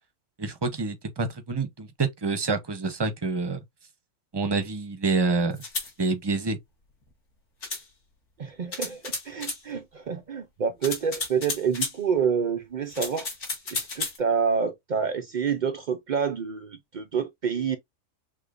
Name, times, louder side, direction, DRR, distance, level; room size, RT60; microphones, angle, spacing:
voice 1, 0.4-3.6 4.3-5.6 6.0-6.6, right 3 dB, 25° right, 0.6 m, -27 dB
sound 1, 5.6-5.9 7.6-7.8 8.7-9.6 10.8-12.0 12.9-14.2, left 3 dB, 50° left, 2.2 m, -32 dB
voice 2, 8.4-13.3 13.7-17.8, right 6 dB, 70° right, 0.4 m, -28 dB
6.4 x 2.6 x 2.5 m
omnidirectional pair, 1.6 m